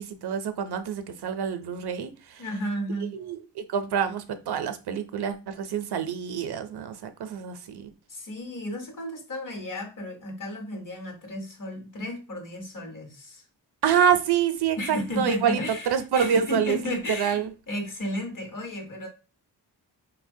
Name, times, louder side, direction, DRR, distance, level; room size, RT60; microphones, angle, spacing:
voice 1, 0.0-2.4 3.1-3.4 3.7-7.9 13.8-15.6 15.9-17.5, right 8 dB, 65° right, 0.5 m, -26 dB
voice 2, 2.4-3.1 8.1-13.5 14.8-19.1, left 1 dB, 50° left, 1.0 m, -34 dB
4.1 x 2.1 x 2.6 m
wide cardioid pair, 100°, 42 cm